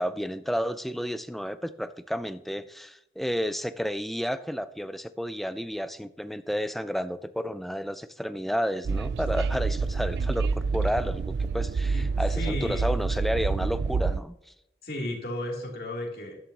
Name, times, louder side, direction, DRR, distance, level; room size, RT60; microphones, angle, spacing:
voice 1, 0.0-14.5, equal, ahead, 11 dB, 0.4 m, -31 dB
Train, 8.8-14.2, right 4 dB, 70° right, 0.3 m, -28 dB
voice 2, 12.3-13.0 14.8-16.4, left 1 dB, 55° left, -1 dB, 3.1 m, -34 dB
13.0 x 11.5 x 3.0 m, 0.81 s
head